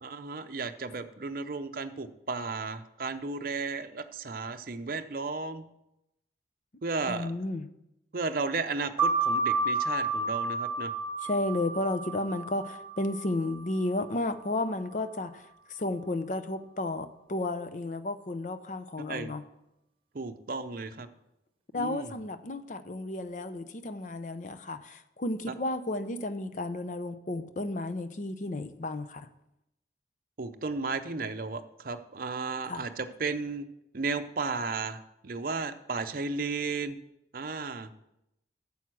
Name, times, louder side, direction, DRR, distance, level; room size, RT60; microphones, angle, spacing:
voice 1, 0.0-5.7 6.8-7.3 8.1-10.9 19.1-19.3 20.1-21.1 21.7-22.1 30.4-33.7 33.9-37.0 37.3-37.9, right 4 dB, 55° right, 7 dB, 0.6 m, -34 dB
voice 2, 7.1-7.7 11.2-15.4 15.7-19.4 21.7-29.3 32.7-32.8, left 2 dB, 45° left, 11 dB, 0.6 m, -33 dB
sound 1, 9.0-14.2, right 3 dB, 30° right, 1.4 m, -30 dB
9.1 x 7.2 x 6.1 m, 0.86 s
head